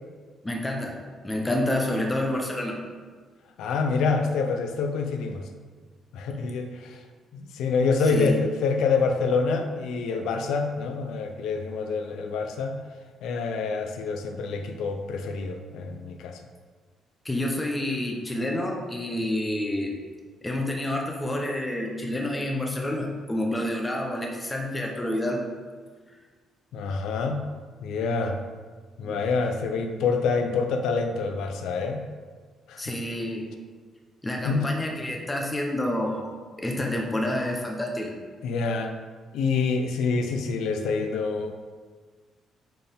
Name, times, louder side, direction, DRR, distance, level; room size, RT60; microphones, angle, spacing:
voice 1, 0.4-2.8 8.1-8.4 17.2-19.9 20.4-25.4 29.0-29.2 32.8-33.5 34.2-36.3 36.6-38.1, left 1 dB, 10° left, 0 dB, 0.8 m, -28 dB
voice 2, 3.6-5.5 6.1-7.0 7.3-12.7 13.2-16.4 26.7-27.4 27.8-28.4 29.0-32.0 32.7-32.8 34.4-34.6 38.4-38.9 39.3-41.5, left 4 dB, 80° left, 6 dB, 0.6 m, -26 dB
9.1 x 4.6 x 3.6 m, 1.5 s
cardioid pair, 180°, 0 cm